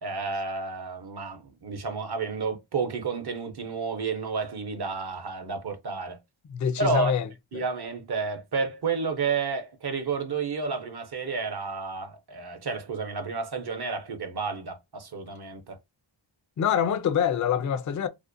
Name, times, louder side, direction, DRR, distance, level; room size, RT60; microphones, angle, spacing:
voice 1, 0.0-6.2 6.8-7.1 7.5-15.8, right 4 dB, 50° right, 0.7 m, -31 dB
voice 2, 6.5-7.3 7.5-7.6 16.6-18.1, left 8 dB, 40° left, 0.4 m, -25 dB
2.5 x 2.1 x 2.5 m
wide cardioid pair, 60°, 50 cm